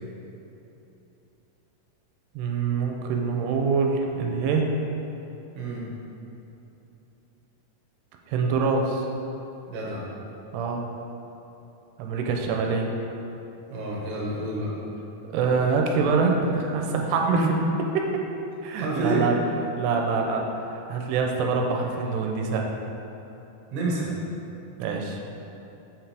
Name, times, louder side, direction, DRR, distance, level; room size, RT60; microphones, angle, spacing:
voice 1, 2.4-4.7 8.3-9.1 10.5-10.8 12.0-12.9 15.2-17.2 17.9-18.1 18.6-19.4 19.8-20.5 20.7-22.7 24.8-25.2, right 5 dB, 85° right, 1 dB, 2.7 m, -25 dB
voice 2, 9.7-10.0 13.7-14.7 17.3-17.5 18.8-19.2 23.7-24.1, right 2 dB, 60° right, -5 dB, 2.1 m, -28 dB
7.0 x 5.8 x 3.4 m, 3.0 s
omnidirectional pair, 4.8 m